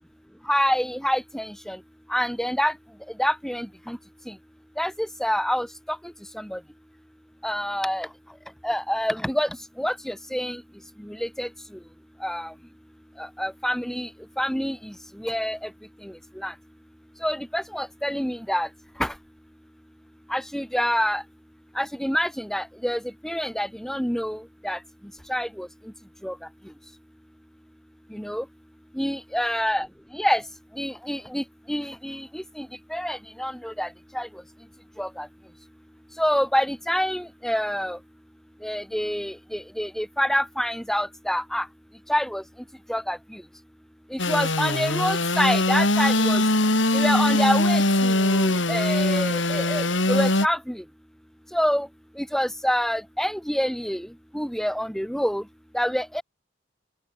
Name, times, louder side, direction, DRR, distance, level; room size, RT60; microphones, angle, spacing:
voice 1, 0.5-1.8 2.1-2.7 3.2-4.0 4.3-4.4 4.8-6.0 6.3-6.6 7.4-8.1 8.6-9.5 9.8-10.6 11.0-11.5 12.2-12.5 13.2-14.1 14.4-14.9 15.2-15.7 16.0-16.5 17.2-18.7 19.0-19.1 20.3-21.2 21.8-24.8 25.3-25.7 26.2-26.4 28.1-28.4 29.0-29.9 30.1-30.4 30.8-33.9 34.1-34.3 35.0-35.3 36.2-38.0 38.6-41.7 42.1-42.4 42.9-43.4 44.1-46.4 46.9-50.8 51.5-51.9 52.2-54.1 54.3-55.4 55.7-56.2, equal, ahead, 2.3 m, -27 dB
Engine / Sawing, 44.2-50.5, left 2 dB, 85° left, 6.0 m, -22 dB
open air
head